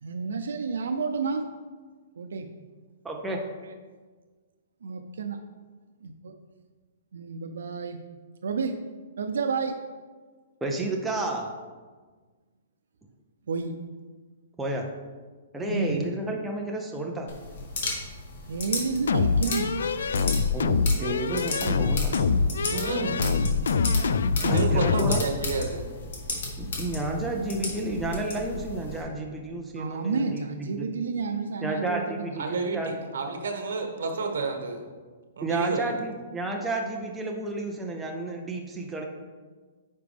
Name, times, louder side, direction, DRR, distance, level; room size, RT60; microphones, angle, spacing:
voice 1, 0.0-1.5 2.2-2.5 4.8-5.4 6.2-6.3 7.1-8.0 8.4-8.8 9.2-9.8 13.5-13.7 15.7-16.1 18.5-19.8 23.2-23.6 29.8-32.2 32.7-32.8, right 4 dB, 85° right, 6 dB, 0.5 m, -30 dB
voice 2, 3.0-3.4 10.6-11.5 14.6-14.9 15.5-17.3 20.5-22.1 24.5-25.2 26.6-30.9 31.6-32.9 35.4-39.0, right 2 dB, 5° right, 0 dB, 0.4 m, -31 dB
sound 1, 17.3-29.0, left 3 dB, 45° left, 1.5 m, -35 dB
sound 2, 19.1-25.3, left 5 dB, 75° left, 0.4 m, -25 dB
voice 3, 22.7-23.2 24.4-25.9 32.4-34.8 35.3-35.9, right 3 dB, 65° right, 4 dB, 1.3 m, -29 dB
9.4 x 5.1 x 3.5 m, 1.4 s
hypercardioid pair, 180°, 0 cm